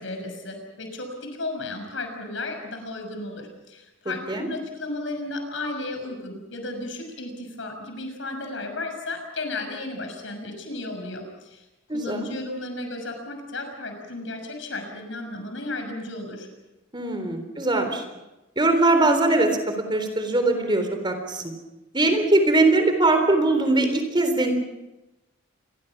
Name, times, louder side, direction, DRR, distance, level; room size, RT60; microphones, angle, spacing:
voice 1, 0.0-11.6 11.9-16.5, left 2 dB, 70° left, 5 dB, 6.2 m, -34 dB
voice 2, 11.9-12.3 16.9-18.0 18.6-21.5 21.9-24.5, right 2 dB, 25° right, 7 dB, 3.8 m, -21 dB
28.0 x 22.0 x 6.1 m, 1.0 s
head